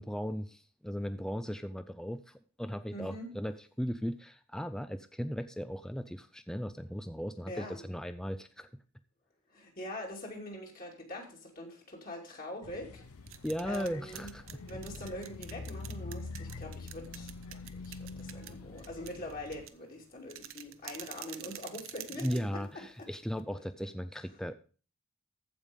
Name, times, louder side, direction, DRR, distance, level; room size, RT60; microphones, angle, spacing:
voice 1, 0.0-8.7 13.4-14.4 22.2-24.5, equal, 5° left, 10 dB, 0.4 m, -37 dB
voice 2, 2.9-3.3 7.5-7.8 9.5-13.0 13.6-14.3 14.6-17.3 17.8-23.1 23.5-23.6 24.3-24.4, left 1 dB, 40° left, 0 dB, 2.7 m, -43 dB
sound 1, 12.6-19.7, left 3 dB, 80° left, 0.7 m, -45 dB
sound 2, 13.0-23.4, right 12 dB, 60° right, 0.8 m, -49 dB
14.5 x 5.1 x 5.3 m, 0.38 s
head